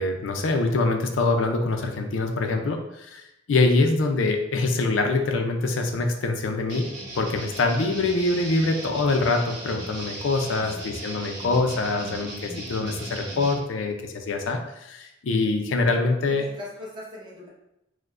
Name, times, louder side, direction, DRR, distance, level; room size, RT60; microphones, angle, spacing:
voice 1, 0.0-6.9 7.2-16.5, left 3 dB, 90° left, 4 dB, 0.4 m, -24 dB
sound 1, 6.7-13.5, right 1 dB, 65° right, 0.9 m, -37 dB
voice 2, 16.3-17.5, left 1 dB, 25° right, -5 dB, 0.9 m, -41 dB
4.6 x 2.1 x 2.4 m, 0.86 s
head